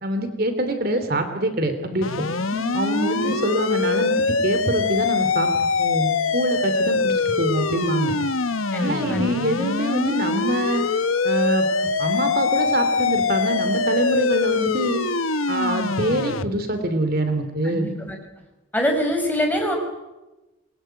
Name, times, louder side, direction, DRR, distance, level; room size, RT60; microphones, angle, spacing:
voice 1, 0.0-2.1 2.7-5.5 5.8-8.2 8.8-10.8 11.2-11.7 12.0-15.0 15.5-17.9, right 1 dB, 45° right, 8 dB, 2.9 m, -25 dB
sound 1, 2.0-16.4, left 4 dB, 90° left, 1.2 m, -23 dB
voice 2, 8.7-9.3 17.6-18.2 18.7-19.8, left 1 dB, 10° left, 3 dB, 6.2 m, -24 dB
27.5 x 22.5 x 9.2 m, 1.1 s
head